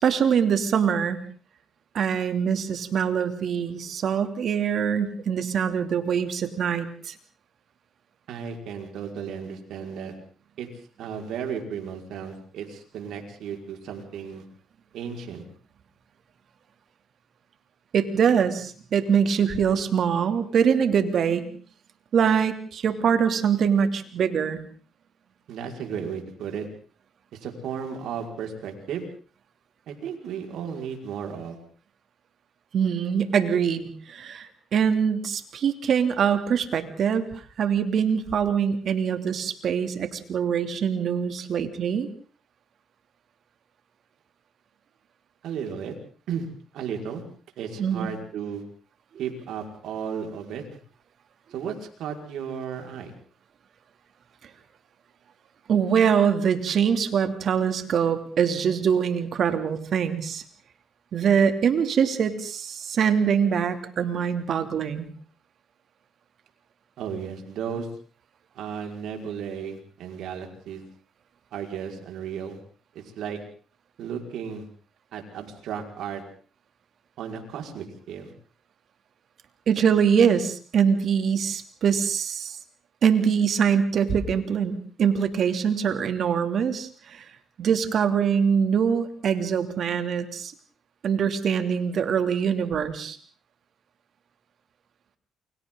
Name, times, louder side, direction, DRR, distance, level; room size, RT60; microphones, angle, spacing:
voice 1, 0.0-1.2 1.9-7.1 17.9-21.5 22.1-24.6 32.7-42.1 47.8-48.1 55.7-60.4 61.1-65.1 79.7-82.6 83.0-87.2 87.6-90.5 91.0-93.2, right 7 dB, 60° right, 8 dB, 2.9 m, -23 dB
voice 2, 8.3-10.1 10.6-10.7 11.0-14.4 14.9-15.4 25.5-26.7 27.3-29.0 29.9-31.6 45.4-45.9 46.3-46.5 46.7-47.2 47.6-48.6 49.2-50.6 51.5-53.1 67.0-67.9 68.5-70.8 71.5-72.6 72.9-73.4 74.0-74.7 75.1-76.2 77.2-78.3, right 7 dB, 80° right, 2 dB, 5.3 m, -34 dB
29.0 x 25.0 x 4.0 m, 0.42 s
cardioid pair, 90°, 0 cm